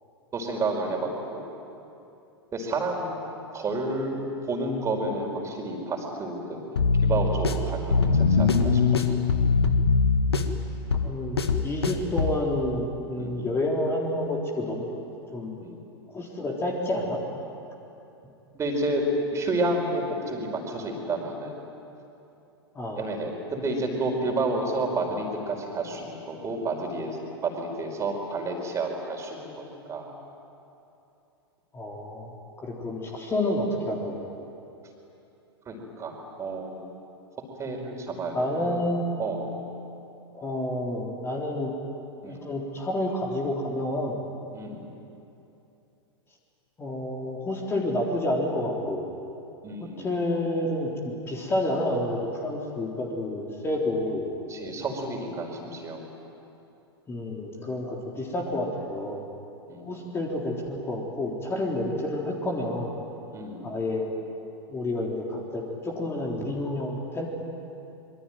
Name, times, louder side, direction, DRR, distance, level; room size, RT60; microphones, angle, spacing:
voice 1, 0.3-1.5 2.5-3.2 3.5-6.6 7.0-9.2 13.2-13.5 15.6-15.7 18.5-19.0 19.3-21.5 23.0-30.1 35.6-36.9 37.6-38.8 39.2-39.5 42.2-42.5 44.5-44.8 49.6-50.1 54.5-56.0 59.7-59.9 63.3-63.7, right 2 dB, 20° right, 2 dB, 5.0 m, -30 dB
sound 1, 6.8-12.4, left 4 dB, 75° left, 1.7 m, -23 dB
voice 2, 11.0-14.9 15.3-15.5 16.1-17.2 22.7-23.0 31.7-34.2 38.3-39.2 40.3-41.7 42.2-44.2 46.8-49.1 50.0-54.3 57.1-59.2 59.8-63.0 63.6-64.1 64.7-67.3, left 1 dB, 20° left, -1 dB, 3.8 m, -29 dB
26.0 x 23.5 x 9.2 m, 2.8 s
figure-of-eight pair, 95°, 13 cm